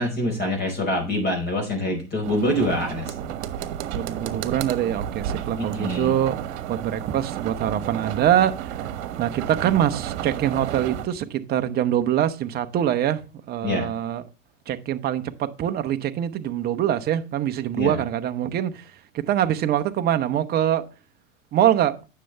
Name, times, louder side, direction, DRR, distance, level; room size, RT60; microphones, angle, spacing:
voice 1, 0.0-3.1 5.6-6.1 13.6-13.9 17.7-18.0, left 1 dB, 25° left, 4.7 m, -25 dB
sound 1, 2.2-11.1, right 10 dB, 55° right, 1.3 m, -32 dB
voice 2, 3.9-6.4 6.7-8.9 9.2-13.2 13.5-14.2 14.7-18.8 19.1-20.8 21.5-22.0, right 11 dB, 25° right, 0.7 m, -24 dB
9.3 x 6.6 x 3.4 m
hypercardioid pair, 115°, 39 cm